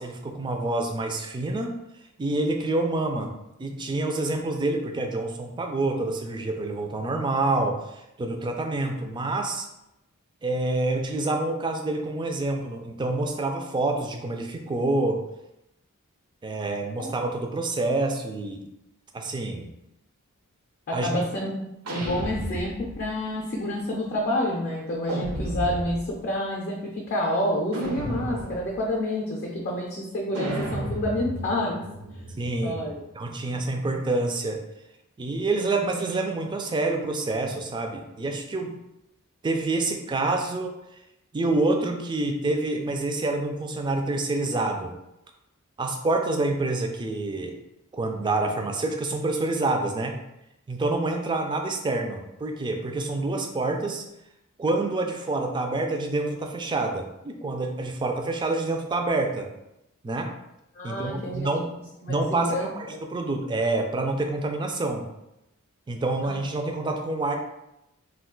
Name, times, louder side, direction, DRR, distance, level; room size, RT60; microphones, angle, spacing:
voice 1, 0.0-1.7 2.2-3.3 3.6-9.7 10.4-15.2 16.4-18.6 19.1-19.7 20.9-21.2 32.3-32.8 33.1-34.6 35.2-38.7 39.4-40.7 41.3-44.9 45.8-47.6 47.9-50.2 50.7-54.0 54.6-59.5 60.0-60.3 60.8-61.7 62.1-65.1 65.9-67.4, right 2 dB, 20° right, 3 dB, 0.3 m, -27 dB
voice 2, 20.9-21.6 21.9-31.8 32.6-33.0 60.8-61.5 62.0-63.0 66.2-66.4, left 1 dB, 45° left, -2 dB, 0.5 m, -29 dB
Wild Impact, 21.8-23.1 25.1-26.2 27.7-28.8 30.3-33.0, right 1 dB, 85° right, 0.8 m, -33 dB
2.4 x 2.2 x 3.7 m, 0.87 s
head